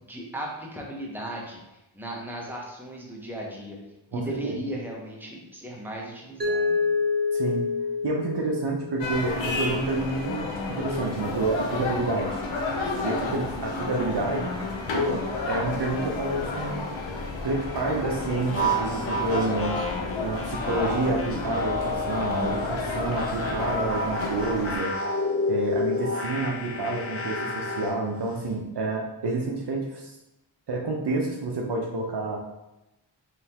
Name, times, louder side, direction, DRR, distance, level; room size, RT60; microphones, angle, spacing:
voice 1, 0.1-1.6 1.9-3.8 4.1-7.0, right 1 dB, 5° right, -2 dB, 1.0 m, -36 dB
voice 2, 4.1-4.6 7.3-7.6 8.0-12.4 13.0-14.6 14.9-16.9 17.4-19.7 20.2-24.9 25.4-30.1 30.7-32.4, right 2 dB, 60° right, 0 dB, 0.7 m, -29 dB
Mallet percussion, 6.4-9.3, left 4 dB, 25° right, 0.5 m, -27 dB
sound 1, 9.0-24.8, left 3 dB, 75° left, 0.8 m, -31 dB
sound 2, 18.4-22.7 23.1-28.0, left 1 dB, 30° left, 0.8 m, -30 dB
3.7 x 3.2 x 2.9 m, 0.92 s
cardioid pair, 50°, 46 cm